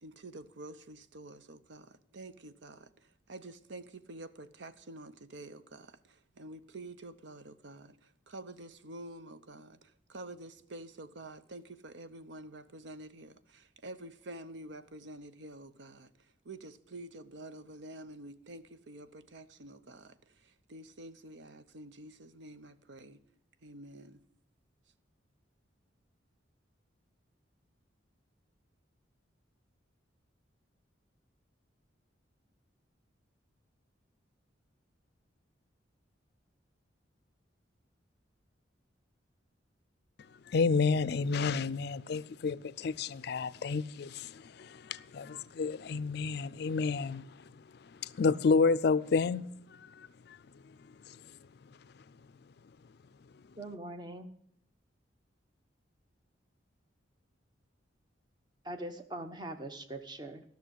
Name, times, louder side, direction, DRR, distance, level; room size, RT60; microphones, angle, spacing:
voice 1, 0.0-23.2 23.6-24.2, right 2 dB, 70° right, 0.7 m, -48 dB
voice 2, 40.5-47.3 47.9-50.4 51.1-51.2, left 4 dB, 55° left, 0.4 m, -30 dB
voice 3, 53.6-54.3 58.6-60.4, right 1 dB, 20° right, 0.9 m, -42 dB
13.5 x 6.4 x 8.1 m
head